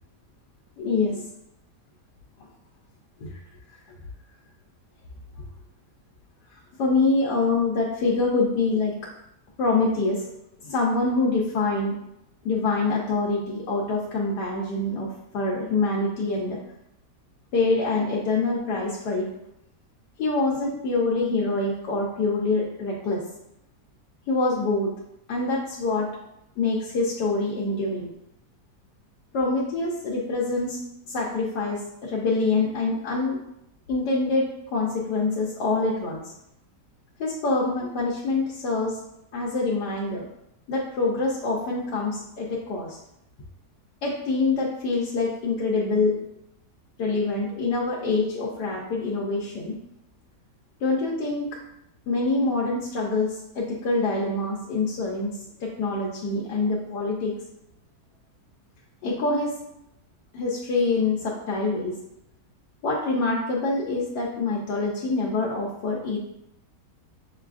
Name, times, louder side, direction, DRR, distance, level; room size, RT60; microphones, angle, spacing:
voice 1, 0.8-1.2 3.2-3.4 6.8-8.9 9.6-10.2 10.6-12.0 12.4-16.6 17.5-19.3 20.2-23.2 24.3-24.9 25.3-26.1 26.6-28.1 29.3-30.8 31.1-33.4 33.9-36.2 37.2-39.0 39.3-40.3 40.7-43.0 44.0-46.2 47.0-49.8 50.8-51.5 52.1-57.3 59.0-59.6 60.3-62.0 62.8-66.2, left 3 dB, 80° left, -4 dB, 1.2 m, -25 dB
6.3 x 2.3 x 2.4 m, 0.83 s
omnidirectional pair, 1.8 m